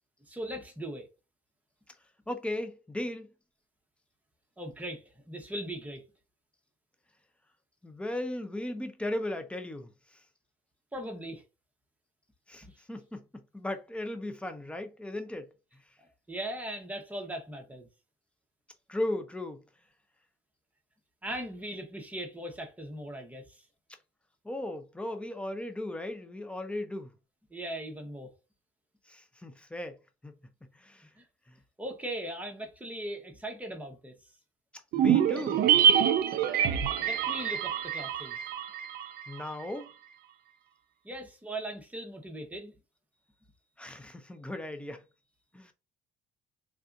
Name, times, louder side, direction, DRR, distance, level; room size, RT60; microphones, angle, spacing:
voice 1, 0.3-1.1 4.6-6.0 10.9-11.4 16.0-17.9 21.2-23.6 27.5-28.3 31.2-31.3 31.8-34.1 36.7-38.4 41.0-42.7, right 1 dB, 10° right, 0.9 m, -39 dB
voice 2, 2.3-3.3 7.8-9.9 12.5-15.5 18.9-19.6 24.4-27.1 29.1-30.0 30.2-30.4 30.7-31.1 31.5-31.6 34.9-35.6 39.3-39.9 43.8-45.0 45.5-45.7, left 1 dB, 5° left, 0.5 m, -36 dB
sound 1, 34.9-39.4 39.7-39.8, right 8 dB, 65° right, 0.5 m, -26 dB
3.4 x 2.6 x 2.5 m
cardioid pair, 110°, 17 cm